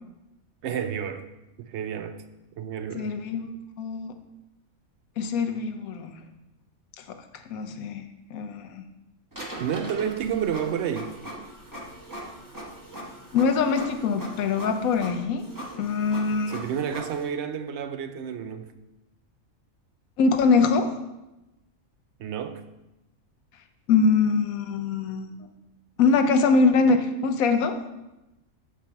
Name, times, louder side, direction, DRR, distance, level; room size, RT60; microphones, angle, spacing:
voice 1, 0.6-1.3 1.6-2.2 2.6-3.1 9.6-11.2 16.3-18.7 22.2-22.6, right 8 dB, 65° right, 0.7 m, -30 dB
voice 2, 2.9-3.5 3.8-4.2 5.2-6.2 7.0-7.2 7.5-8.8 13.3-15.5 15.8-16.5 20.2-21.0 23.9-25.3 26.0-27.8, left 4 dB, 85° left, 1.1 m, -23 dB
Printer, 9.3-17.2, equal, 15° right, 1.0 m, -41 dB
7.2 x 4.9 x 4.5 m
omnidirectional pair, 1.4 m